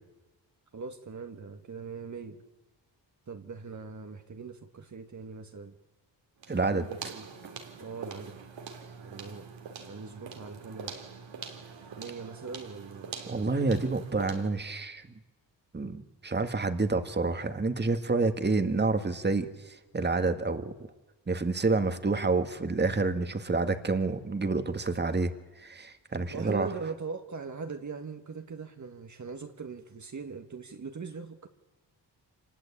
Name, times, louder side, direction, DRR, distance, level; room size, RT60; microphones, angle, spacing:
voice 1, 0.7-2.4 3.3-5.8 6.6-7.3 7.8-8.4 9.0-9.5 9.9-11.0 12.0-13.1 26.3-31.5, right 5 dB, 40° right, 5 dB, 1.8 m, -41 dB
sound 1, 6.4-14.6, right 6 dB, 85° right, 3.2 m, -44 dB
voice 2, 6.5-6.9 13.3-15.1 15.7-20.7 21.3-25.3 25.6-26.7, right 3 dB, 25° right, 8 dB, 1.9 m, -28 dB
26.0 x 20.5 x 8.6 m, 1.1 s
cardioid pair, 80°, 44 cm